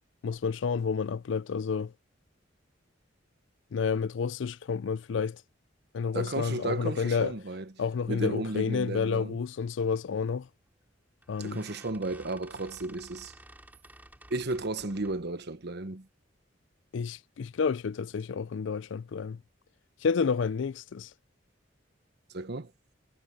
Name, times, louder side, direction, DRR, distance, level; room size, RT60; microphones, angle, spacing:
voice 1, 0.2-1.9 3.7-5.4 5.9-7.3 7.8-10.5 11.3-11.6 16.9-19.4 20.0-21.1, left 5 dB, 70° left, 0.4 m, -30 dB
voice 2, 6.1-7.7 8.1-9.4 11.4-13.3 14.3-16.1 22.3-22.7, right 2 dB, 60° right, 1.2 m, -34 dB
sound 1, 10.5-10.7 11.2-15.3, right 1 dB, 10° right, 2.5 m, -53 dB
head